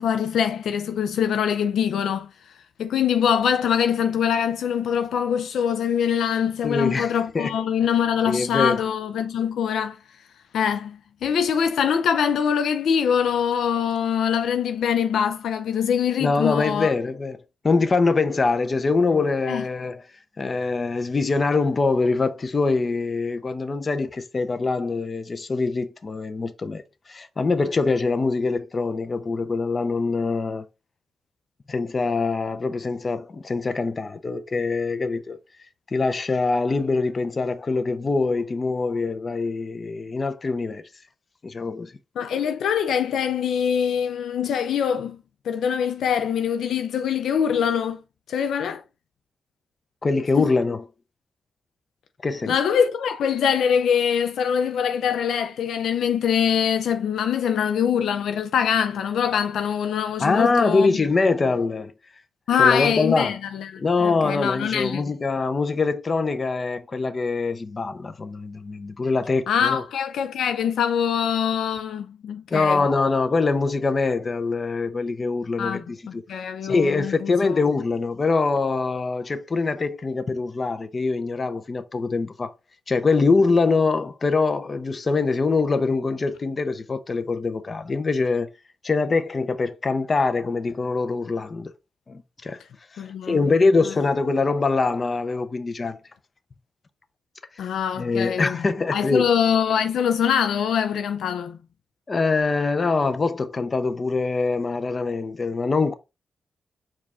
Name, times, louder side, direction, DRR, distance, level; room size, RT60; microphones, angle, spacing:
voice 1, 0.0-2.3 2.8-10.0 10.5-16.9 19.5-19.6 42.2-45.2 45.4-48.0 48.3-48.8 50.4-50.5 52.5-61.0 62.5-65.0 69.5-72.9 75.6-77.6 93.0-93.5 97.6-98.6 98.9-101.6, left 8 dB, 85° left, 0.3 m, -23 dB
voice 2, 6.6-7.5 8.3-8.8 16.2-17.4 17.6-20.0 20.4-30.7 31.7-35.4 35.9-40.8 41.4-41.9 50.0-50.8 52.2-52.6 60.2-61.9 62.6-63.3 63.8-69.8 72.5-76.2 76.6-82.5 82.9-88.5 88.8-91.7 92.1-92.6 92.9-96.0 98.0-99.3 102.1-105.9, left 3 dB, 45° left, 0.6 m, -23 dB
4.6 x 2.4 x 4.2 m
cardioid pair, 60°, 0 cm